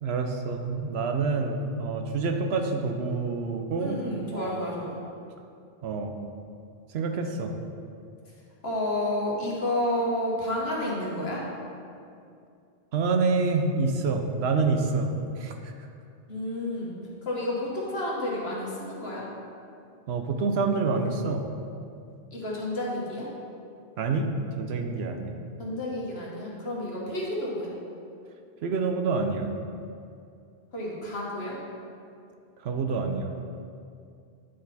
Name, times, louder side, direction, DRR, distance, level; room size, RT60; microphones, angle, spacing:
voice 1, 0.0-4.0 4.3-4.5 5.8-6.1 6.9-7.5 12.9-15.7 20.1-21.4 24.0-24.3 24.6-25.4 28.6-29.5 32.6-33.3, right 4 dB, 75° right, 5 dB, 0.9 m, -27 dB
voice 2, 3.8-5.0 8.6-11.4 16.3-17.0 17.3-19.3 22.3-23.3 25.6-27.7 30.7-31.6, left 1 dB, 65° left, -4 dB, 1.6 m, -30 dB
9.4 x 4.1 x 4.1 m, 2.4 s
omnidirectional pair, 1.1 m